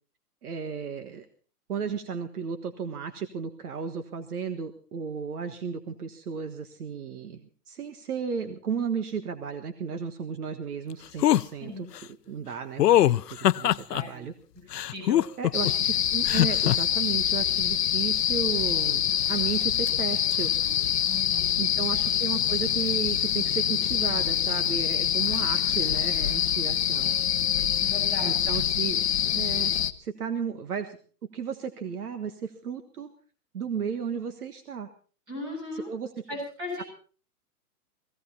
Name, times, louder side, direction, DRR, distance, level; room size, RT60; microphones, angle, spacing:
voice 1, 0.4-1.2 1.7-11.9 12.3-14.3 15.4-19.0 19.3-20.5 21.6-27.2 28.2-29.7 30.0-31.0 31.3-33.1 33.5-34.9 35.7-36.1, right 6 dB, 70° right, 8 dB, 1.6 m, -34 dB
sound 1, 11.2-11.4 12.8-14.0 14.7-15.7 16.3-16.8, left 13 dB, 80° left, 0.7 m, -21 dB
voice 2, 13.9-14.2 14.8-15.2 21.1-21.6 27.8-28.6 35.3-35.9 36.3-36.9, left 2 dB, 20° right, 0 dB, 7.8 m, -37 dB
sound 2, 15.5-29.9, left 10 dB, 45° left, 0.8 m, -25 dB
17.5 x 16.5 x 4.2 m, 0.40 s
hypercardioid pair, 170°, 47 cm